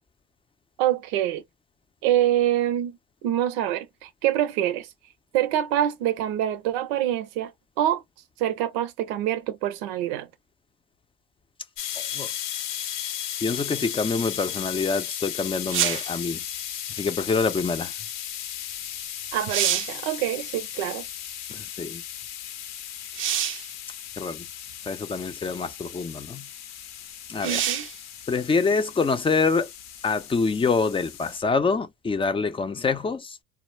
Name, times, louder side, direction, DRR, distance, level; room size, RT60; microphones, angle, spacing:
voice 1, 0.8-1.4 2.0-3.0 3.2-4.9 5.3-7.5 7.8-8.0 8.4-10.3 19.3-21.1 27.4-27.9, right 12 dB, 85° right, 0.6 m, -25 dB
sound 1, 11.8-31.4, left 10 dB, 60° left, 0.6 m, -36 dB
voice 2, 12.0-12.3 13.4-16.4 17.0-17.9 21.5-22.0 24.2-24.4 24.9-26.5 27.3-27.6 28.3-29.7 30.0-33.4, left 4 dB, 15° left, 0.5 m, -26 dB
sound 2, 15.7-16.2 18.8-18.9 19.3-20.0 23.1-23.7 24.7-24.8 27.4-28.0 31.6-31.7, right 10 dB, 40° right, 0.4 m, -26 dB
2.2 x 2.1 x 3.1 m
supercardioid pair, 90°, 31 cm